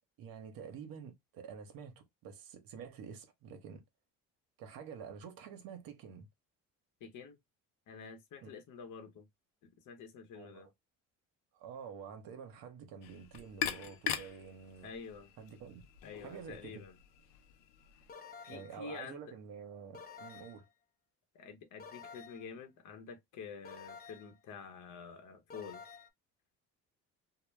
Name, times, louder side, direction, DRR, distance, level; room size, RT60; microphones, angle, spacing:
voice 1, 0.2-3.8 4.6-6.3 8.4-8.5 10.3-10.7 11.5-14.9 15.4-15.9 16.2-16.8 18.5-20.7, right 7 dB, 65° right, 0.8 m, -48 dB
voice 2, 7.0-7.4 7.9-9.2 9.6-10.7 14.8-15.3 16.0-17.0 18.4-19.2 21.3-25.8, left 5 dB, 55° left, 0.8 m, -48 dB
sound 1, 13.0-18.1, left 10 dB, 85° left, 0.5 m, -42 dB
sound 2, 18.1-18.8 19.9-20.7 21.8-22.5 23.6-24.4 25.5-26.1, left 6 dB, 25° left, 0.5 m, -51 dB
2.1 x 2.1 x 3.1 m
supercardioid pair, 70°, 37 cm